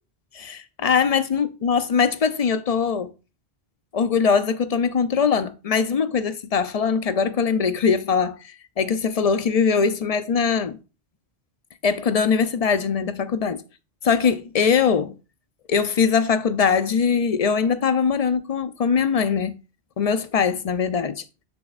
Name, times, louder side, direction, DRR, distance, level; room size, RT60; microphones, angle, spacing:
voice 1, 0.3-3.1 3.9-10.8 11.8-13.6 14.0-15.1 15.7-19.6 20.0-21.2, left 6 dB, 50° left, 0.5 m, -21 dB
7.0 x 6.9 x 2.4 m
omnidirectional pair, 1.1 m